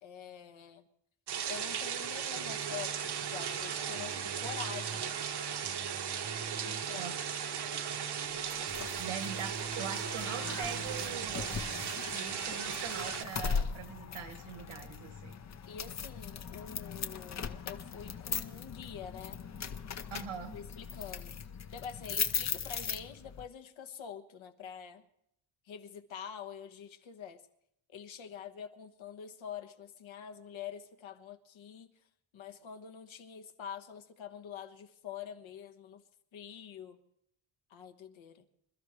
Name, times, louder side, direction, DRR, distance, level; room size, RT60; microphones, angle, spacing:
voice 1, 0.0-0.9 1.5-5.1 6.5-7.0 15.7-19.5 20.5-21.3 21.7-25.0 25.6-27.4 27.9-32.0 32.3-36.0 36.3-37.0 37.7-38.5, left 8 dB, 70° left, 7 dB, 1.5 m, -46 dB
sound 1, 1.3-13.2, right 8 dB, 55° right, 1.1 m, -37 dB
sound 2, 2.3-13.3, right 5 dB, 25° right, 0.5 m, -46 dB
sound 3, 8.5-23.5, left 6 dB, 35° left, 0.7 m, -39 dB
voice 2, 9.0-11.5 12.1-15.4 20.1-20.6, right 7 dB, 80° right, 8 dB, 2.0 m, -42 dB
26.5 x 13.0 x 3.2 m, 0.73 s
wide cardioid pair, 155°, 49 cm